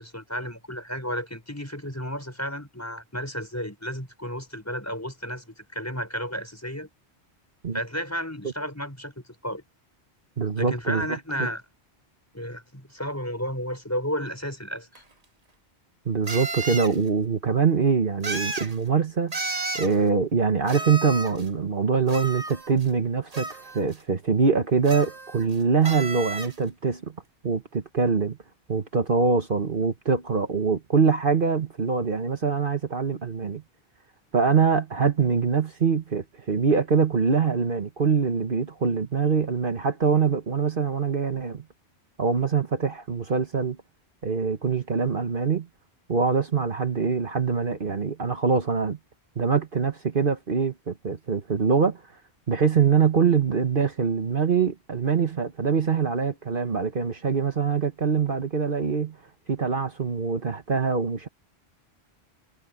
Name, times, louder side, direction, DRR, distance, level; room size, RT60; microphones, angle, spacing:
voice 1, 0.0-6.9 7.7-9.1 9.4-9.6 10.6-11.6 12.3-15.0, equal, 15° left, 5.5 m, -32 dB
voice 2, 10.4-11.1 11.4-11.5 16.0-19.3 19.7-27.1 27.4-28.4 28.7-33.6 34.3-41.6 42.2-43.8 44.2-45.7 46.1-49.0 49.4-52.0 52.5-59.2 59.5-61.3, right 5 dB, 55° right, 1.4 m, -24 dB
sound 1, 15.0-15.1 16.3-17.0 18.2-18.7 19.3-19.9 20.7-21.5 22.1-22.9 23.3-23.9 24.9-25.5 25.8-26.6, right 2 dB, 35° right, 1.6 m, -33 dB
omnidirectional pair, 1.1 m